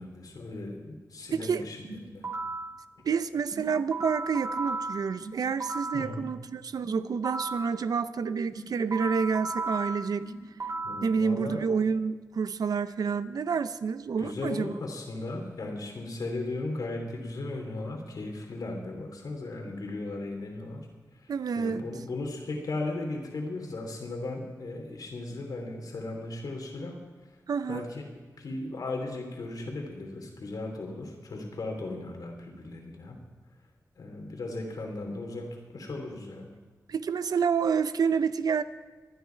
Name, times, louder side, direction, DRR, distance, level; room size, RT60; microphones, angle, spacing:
voice 1, 0.0-1.8 2.1-2.3 5.9-6.2 10.8-11.6 14.2-20.9 21.2-27.0 27.7-28.1 28.4-33.2 34.0-36.5, left 2 dB, 85° left, 2 dB, 3.1 m, -36 dB
voice 2, 1.3-1.7 3.0-10.3 11.0-14.7 21.3-21.8 27.5-27.9 36.9-38.6, right 6 dB, 85° right, 13 dB, 0.6 m, -28 dB
sound 1, 1.8-2.7 3.5-6.1 6.8-7.7 8.5-11.1, right 3 dB, 50° right, 3.1 m, -35 dB
24.5 x 9.7 x 4.6 m, 1.4 s
wide cardioid pair, 70°, 6 cm